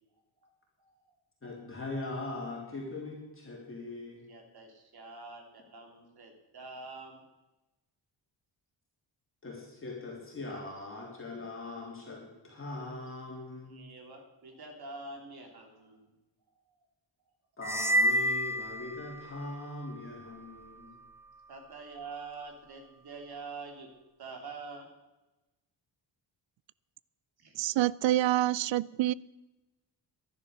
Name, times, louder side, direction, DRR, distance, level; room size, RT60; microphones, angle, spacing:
voice 1, 0.8-1.2 4.3-7.2 13.7-16.1 21.5-23.9 24.2-24.9 27.4-27.5, right 3 dB, 55° right, 3 dB, 3.1 m, -46 dB
voice 2, 1.4-4.2 9.4-13.8 17.6-21.0, left 2 dB, 25° left, -3 dB, 3.3 m, -41 dB
sound 1, 17.6-19.5, equal, 5° right, 0.4 m, -29 dB
voice 3, 27.5-29.1, right 14 dB, 75° right, 22 dB, 0.5 m, -27 dB
12.5 x 11.0 x 6.6 m, 1.0 s
wide cardioid pair, 145°, 46 cm